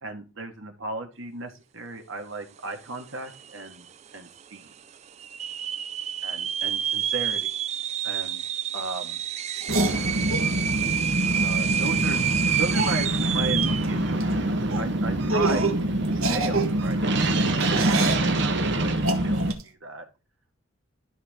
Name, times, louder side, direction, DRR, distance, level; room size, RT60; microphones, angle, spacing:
voice 1, 0.0-3.9 4.1-4.7 6.2-7.5 8.0-8.4 8.7-9.2 11.4-12.2 12.6-15.7 16.1-18.9 19.2-20.0, right 2 dB, 70° right, 4 dB, 1.8 m, -36 dB
sound 1, 3.0-3.1 3.3-3.9 4.4-4.5 5.2-13.9, right 9 dB, 30° right, 0.3 m, -28 dB
sound 2, 9.6-10.5 11.9-12.0 12.2-12.3 12.7-13.0 13.6-13.9 14.1-14.3 14.7-14.9 15.3-15.8 16.1-18.3 19.0-19.6, right 3 dB, 85° right, 1.6 m, -27 dB
sound 3, 9.7-19.5, right 1 dB, 55° right, 1.2 m, -25 dB
12.5 x 4.8 x 3.6 m, 0.31 s
head